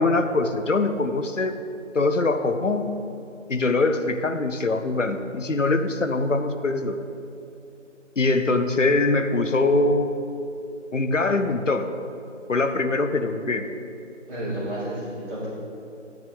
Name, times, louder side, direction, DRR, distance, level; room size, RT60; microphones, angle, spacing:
voice 1, 0.0-1.5 1.9-2.9 3.5-7.0 8.2-10.2 10.9-11.9 12.5-13.6, left 3 dB, 75° left, 8 dB, 0.9 m, -23 dB
voice 2, 14.3-15.5, right 1 dB, 10° right, -15 dB, 2.0 m, -31 dB
11.0 x 9.4 x 3.6 m, 2.9 s
figure-of-eight pair, 160°, 38 cm